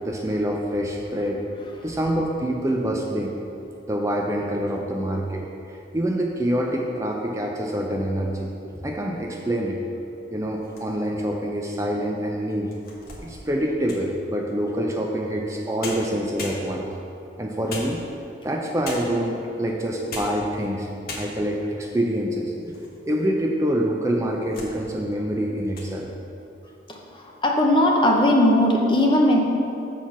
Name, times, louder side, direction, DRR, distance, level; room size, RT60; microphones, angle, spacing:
voice 1, 0.0-1.4 1.8-3.3 3.9-8.5 8.8-9.8 10.3-12.7 13.2-16.8 17.4-18.0 18.4-20.9 21.2-26.1, equal, 15° right, 0 dB, 0.4 m, -26 dB
sound 1, 10.5-11.3 11.9-12.0 12.5-14.2 15.5-15.6 15.8-17.0 17.7-18.4 18.8-19.3 19.9-20.5 20.7-20.8 21.1-21.6 22.2-23.0 23.3-23.4 24.1-24.8 25.1-25.3 25.6-25.9, left 2 dB, 55° left, 1.3 m, -38 dB
voice 2, 27.4-29.4, left 1 dB, 25° left, 0 dB, 0.8 m, -18 dB
7.3 x 4.5 x 5.9 m, 2.8 s
head